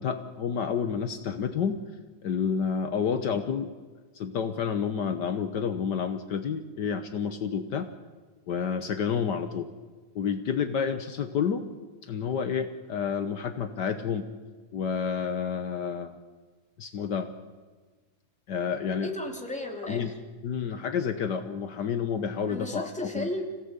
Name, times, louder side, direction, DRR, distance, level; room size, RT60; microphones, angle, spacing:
voice 1, 0.0-1.8 2.2-3.7 4.1-7.9 8.5-9.7 10.1-11.6 12.0-14.3 14.7-16.2 16.8-17.3 18.5-19.1 19.8-20.1 20.4-23.3, left 7 dB, 85° left, 8 dB, 0.9 m, -29 dB
voice 2, 18.9-20.2 22.5-23.4, left 1 dB, ahead, 1 dB, 2.6 m, -35 dB
26.5 x 17.5 x 8.2 m, 1.4 s
omnidirectional pair, 3.4 m